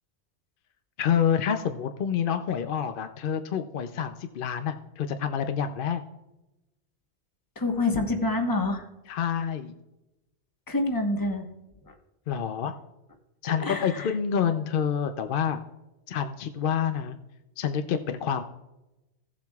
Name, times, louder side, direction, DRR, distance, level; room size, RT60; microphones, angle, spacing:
voice 1, 1.0-6.0 9.1-9.7 12.3-12.7 13.4-15.6 16.1-17.2 17.6-18.4, left 8 dB, 60° left, 8 dB, 0.7 m, -28 dB
voice 2, 7.6-8.9 10.7-11.5 11.8-11.9 13.4-14.1, left 2 dB, 20° left, 4 dB, 1.1 m, -27 dB
17.0 x 7.4 x 2.3 m, 0.96 s
omnidirectional pair, 1.2 m